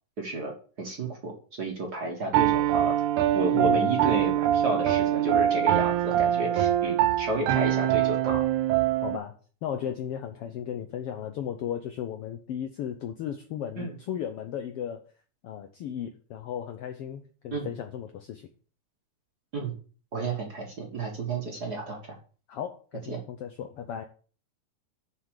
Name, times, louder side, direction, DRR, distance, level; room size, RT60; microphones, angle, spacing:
voice 1, 0.2-1.3 1.6-3.0 3.3-8.4 13.8-13.9 17.5-17.7 19.5-19.7 20.1-22.2 23.1-23.2, right 2 dB, 40° right, 1 dB, 1.6 m, -32 dB
Piano, 2.3-9.2, right 12 dB, 90° right, 2.2 m, -24 dB
voice 2, 3.5-4.0 9.0-15.1 15.4-18.5 22.5-24.0, left 9 dB, 75° left, 7 dB, 1.4 m, -35 dB
7.2 x 6.1 x 6.4 m, 0.40 s
omnidirectional pair, 3.4 m